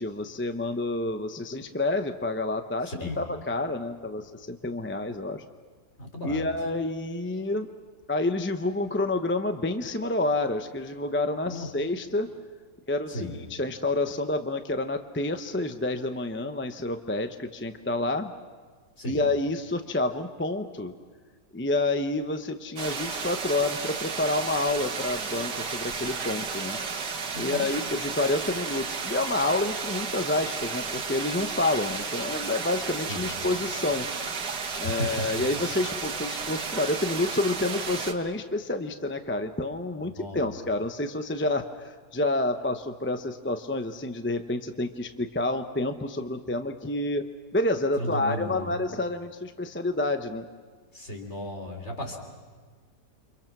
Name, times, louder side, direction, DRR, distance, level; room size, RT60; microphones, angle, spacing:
voice 1, 0.0-5.4 6.2-7.7 8.1-12.3 12.9-18.3 19.1-20.9 21.5-26.8 27.3-34.1 34.8-50.5, left 2 dB, 15° left, 7 dB, 0.5 m, -29 dB
voice 2, 2.8-3.2 6.0-6.4 11.5-11.7 13.1-13.3 19.0-19.3 27.3-27.7 33.1-33.3 34.8-35.1 40.0-40.5 48.0-48.7 50.9-52.2, left 1 dB, 40° left, 2 dB, 4.0 m, -35 dB
sound 1, 22.8-38.1, right 5 dB, 80° right, 2.1 m, -33 dB
29.5 x 25.5 x 6.1 m, 1.5 s
omnidirectional pair, 1.8 m